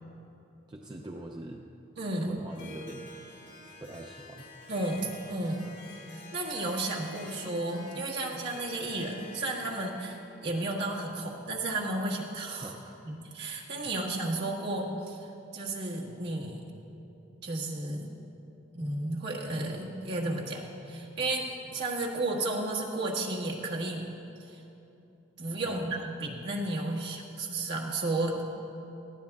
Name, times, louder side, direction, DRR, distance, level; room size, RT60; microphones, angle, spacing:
voice 1, 0.7-1.7 2.2-3.2 3.8-4.5 12.6-13.0 13.8-13.9 25.6-25.9, right 1 dB, 20° right, 1 dB, 0.4 m, -43 dB
voice 2, 2.0-2.4 4.7-5.8 6.1-12.7 13.0-16.6 17.4-18.1 18.7-24.0 24.4-24.6 25.4-28.5, right 2 dB, 55° right, -3 dB, 1.5 m, -33 dB
Harp, 2.5-11.2, left 2 dB, 50° left, 2.8 m, -49 dB
19.0 x 14.0 x 2.3 m, 2.9 s
head